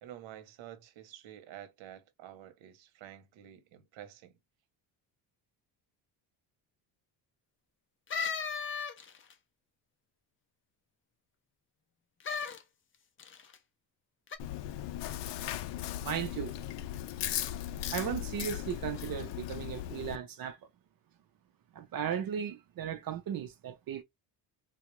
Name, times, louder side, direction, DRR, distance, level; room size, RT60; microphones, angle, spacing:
voice 1, 0.0-4.4, right 11 dB, 85° right, 0.9 m, -50 dB
sound 1, 8.1-9.3 12.2-12.6 13.2-13.6 14.3-14.4, left 6 dB, 30° left, 0.6 m, -35 dB
Chewing mastication, 14.4-20.2, left 12 dB, 70° left, 0.6 m, -37 dB
voice 2, 16.0-16.5 17.9-20.6 21.7-24.0, right 9 dB, 50° right, 0.7 m, -36 dB
3.7 x 2.3 x 3.0 m
cardioid pair, 130°, 44 cm